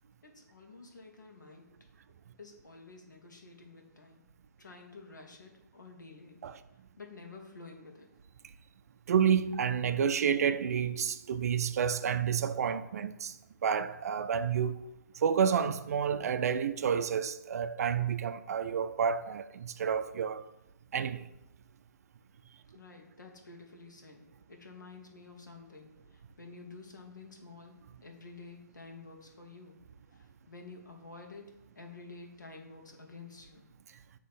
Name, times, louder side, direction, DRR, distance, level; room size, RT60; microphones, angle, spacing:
voice 1, 0.2-1.7 2.4-4.2 4.6-6.4 7.0-8.1 22.7-29.8 30.1-33.6, left 3 dB, 80° left, 1.3 m, -50 dB
voice 2, 9.1-13.3 13.6-14.7 15.2-20.4 20.9-21.2, right 7 dB, 55° right, 0.4 m, -29 dB
7.6 x 3.0 x 4.1 m
figure-of-eight pair, 135°, 10 cm